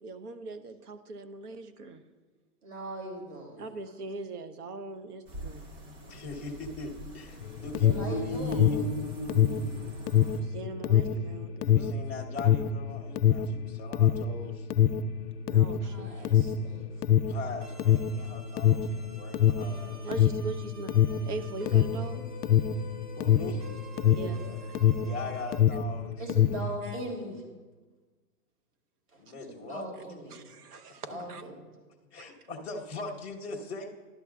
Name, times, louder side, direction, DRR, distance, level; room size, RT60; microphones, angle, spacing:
voice 1, 0.0-2.0 3.6-5.6 9.7-11.9 15.5-16.3 20.0-20.9 21.2-22.2 24.1-24.8 26.8-26.9 30.3-31.4 32.2-32.3, right 3 dB, 75° right, 10 dB, 1.1 m, -41 dB
voice 2, 2.6-3.7 7.8-8.7 15.8-16.9 17.2-17.3 24.1-24.6 26.2-27.4 29.1-30.4 31.1-31.5, right 1 dB, 55° right, -1 dB, 3.0 m, -40 dB
sound 1, 5.3-10.4, left 1 dB, 25° right, 1.4 m, -40 dB
voice 3, 6.1-8.8 11.6-14.7 17.3-20.1 23.1-23.6 25.0-26.1 29.2-29.8 31.1-31.2 32.1-33.9, left 2 dB, 5° right, -3 dB, 0.4 m, -40 dB
Alarm, 7.4-25.2 25.5-26.7, left 9 dB, 90° left, 0.6 m, -24 dB
sound 2, 17.6-25.6, equal, 90° right, 2.5 m, -49 dB
12.5 x 11.5 x 2.4 m, 1.3 s
hypercardioid pair, 150°, 46 cm